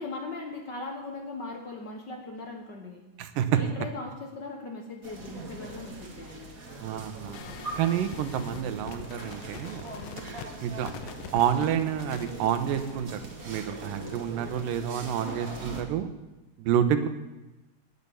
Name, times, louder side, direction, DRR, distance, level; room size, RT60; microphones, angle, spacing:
voice 1, 0.0-3.0 3.5-6.5 7.5-7.7, left 3 dB, 65° left, 2 dB, 1.1 m, -39 dB
voice 2, 3.2-3.6 6.8-7.4 7.8-9.8 10.6-10.9 11.3-13.2 13.5-16.1 16.6-17.1, right 9 dB, 85° right, 9 dB, 2.6 m, -28 dB
sound 1, 5.0-15.8, right 2 dB, 35° right, 1.7 m, -41 dB
sound 2, 7.3-13.5, left 9 dB, 90° left, 2.6 m, -44 dB
19.0 x 6.9 x 7.0 m, 1.0 s
omnidirectional pair, 3.9 m